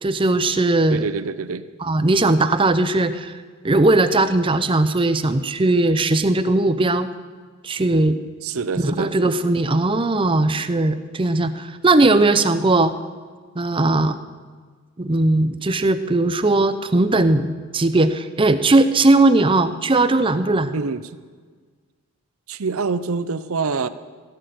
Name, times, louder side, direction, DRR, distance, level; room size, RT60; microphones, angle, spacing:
voice 1, 0.0-1.0 1.8-3.3 3.6-7.1 7.6-8.2 8.8-12.9 13.6-14.2 15.0-20.8, right 2 dB, 25° right, 11 dB, 0.6 m, -18 dB
voice 2, 0.9-1.7 8.4-9.1 20.7-21.1 22.5-23.9, right 4 dB, 75° right, 14 dB, 0.7 m, -25 dB
16.5 x 6.7 x 9.4 m, 1.5 s
head